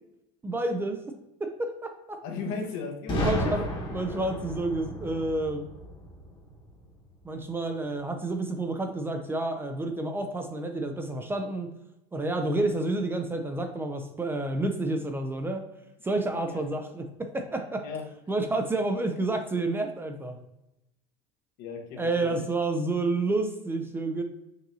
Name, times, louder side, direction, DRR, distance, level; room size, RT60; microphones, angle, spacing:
voice 1, 0.4-1.0 1.4-2.2 3.2-5.7 7.2-11.7 12.1-15.6 16.0-17.9 18.3-20.4 22.0-24.2, right 2 dB, 15° right, 5 dB, 0.4 m, -29 dB
voice 2, 2.2-3.8 16.5-16.6 17.8-18.0 21.6-22.4, left 5 dB, 65° left, 3 dB, 1.0 m, -36 dB
Boom, 3.1-6.9, left 1 dB, 30° left, 1.2 m, -33 dB
5.3 x 2.7 x 2.7 m, 0.90 s
supercardioid pair, 110°, 17 cm